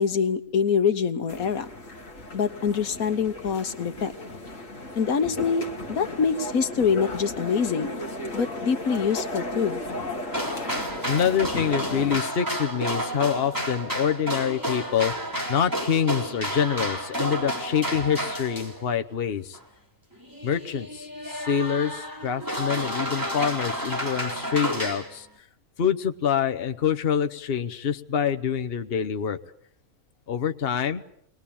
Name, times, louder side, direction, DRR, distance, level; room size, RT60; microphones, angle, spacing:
voice 1, 0.0-1.7 2.3-4.1 5.0-7.9 8.3-9.8, left 6 dB, 85° left, 10 dB, 1.7 m, -25 dB
sound 1, 1.3-12.2, left 1 dB, 65° left, 2.3 m, -35 dB
sound 2, 10.3-18.9 19.5-19.6 20.2-25.2, equal, 15° right, 3.7 m, -31 dB
voice 2, 11.0-19.6 20.4-25.3 25.8-29.4 30.3-31.0, left 8 dB, 45° left, 8 dB, 1.2 m, -26 dB
23.0 x 20.0 x 8.7 m, 0.70 s
omnidirectional pair, 1.5 m